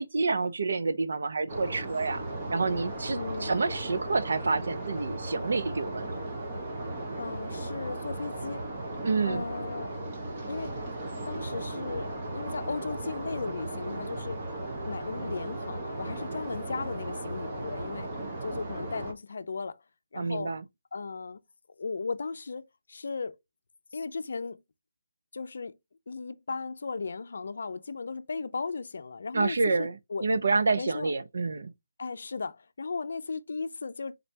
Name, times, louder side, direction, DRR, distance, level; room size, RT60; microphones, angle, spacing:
voice 1, 0.0-2.2 2.5-6.1 9.0-9.5 20.1-20.6 29.3-31.7, right 3 dB, 60° right, 0.6 m, -28 dB
sound 1, 1.5-19.1, right 1 dB, 25° right, 1.1 m, -36 dB
voice 2, 3.1-3.6 7.1-8.6 9.3-9.9 10.5-10.8 11.3-18.1 18.4-19.8 20.1-20.5 20.9-21.4 21.8-23.4 23.9-24.6 25.3-25.8 26.1-30.3 30.8-31.1 32.0-34.2, left 4 dB, 60° left, 0.5 m, -36 dB
3.9 x 3.2 x 2.8 m
hypercardioid pair, 175°, 0 cm